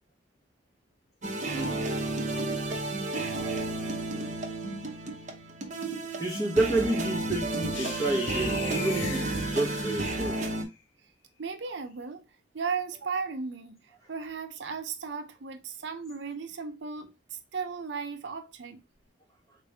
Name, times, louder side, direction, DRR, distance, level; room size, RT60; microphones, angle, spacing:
sound 1, 1.2-10.6, right 2 dB, 40° right, 0.8 m, -32 dB
voice 1, 1.5-1.9 6.2-10.4, right 2 dB, 20° left, 1.4 m, -30 dB
sound 2, 7.7-10.6, left 5 dB, 85° left, 0.7 m, -39 dB
voice 2, 11.4-12.2 12.5-18.8, right 5 dB, 70° right, 0.6 m, -36 dB
4.0 x 3.2 x 3.4 m
head